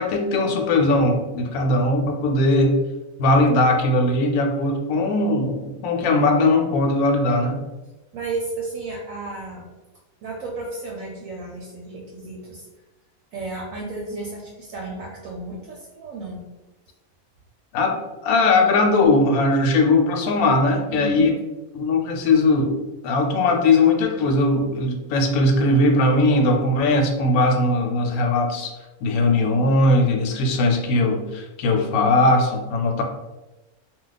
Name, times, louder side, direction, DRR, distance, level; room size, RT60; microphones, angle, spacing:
voice 1, 0.0-2.8 3.2-7.6 17.7-18.0 18.2-21.3 21.7-22.7 23.0-28.7 29.0-33.0, left 2 dB, 75° left, 3 dB, 1.0 m, -19 dB
voice 2, 8.1-9.7 10.2-12.7 13.3-16.4 20.9-21.3, right 3 dB, 70° right, -2 dB, 0.9 m, -33 dB
2.3 x 2.3 x 3.9 m, 1.1 s
omnidirectional pair, 1.6 m